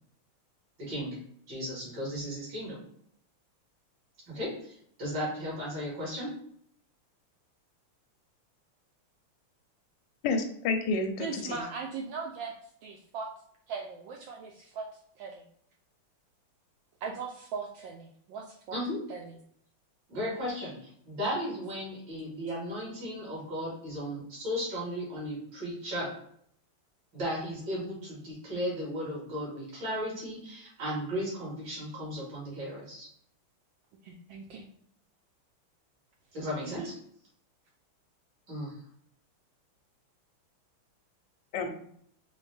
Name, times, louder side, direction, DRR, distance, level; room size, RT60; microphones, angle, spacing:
voice 1, 0.8-1.2 1.5-2.8 4.3-6.3 18.7-19.0 20.1-26.2 27.1-33.1 36.3-36.9 38.5-38.8, equal, 55° right, -6 dB, 2.5 m, -35 dB
voice 2, 10.2-11.6 41.5-41.7, left 3 dB, 70° left, 5 dB, 1.1 m, -30 dB
voice 3, 11.2-13.3 13.7-14.9 15.2-15.4 17.0-18.8 19.1-19.4 34.0-34.7 36.6-36.9, right 5 dB, 75° right, 1 dB, 1.1 m, -39 dB
5.1 x 2.1 x 3.3 m, 0.66 s
omnidirectional pair, 2.4 m